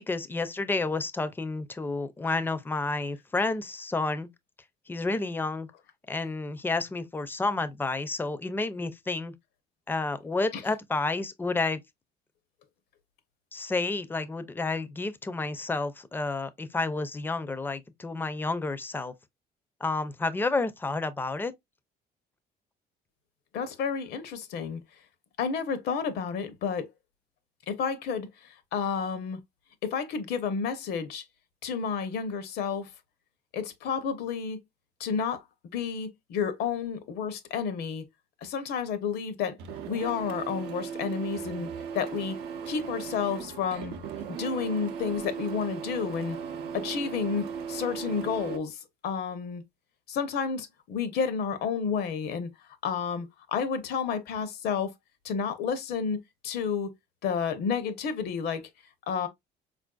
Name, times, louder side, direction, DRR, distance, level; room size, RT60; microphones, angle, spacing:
voice 1, 0.0-4.3 4.9-5.7 6.1-9.3 9.9-11.8 13.5-19.1 19.8-21.5, left 3 dB, 10° left, 0.4 m, -30 dB
voice 2, 23.5-24.8 25.4-26.9 27.7-28.3 28.7-29.4 29.8-31.2 31.6-32.9 33.5-34.6 35.0-35.4 35.7-38.0 38.4-39.5 39.9-41.7 41.9-42.4 42.7-43.9 44.3-46.4 46.7-48.8 49.0-49.6 50.1-52.5 52.8-54.9 55.2-56.9 57.2-58.7 59.1-59.3, left 6 dB, 75° left, 0.7 m, -30 dB
Printer, 39.6-48.6, right 7 dB, 85° right, 0.6 m, -37 dB
4.2 x 2.5 x 2.2 m
cardioid pair, 110°, 17 cm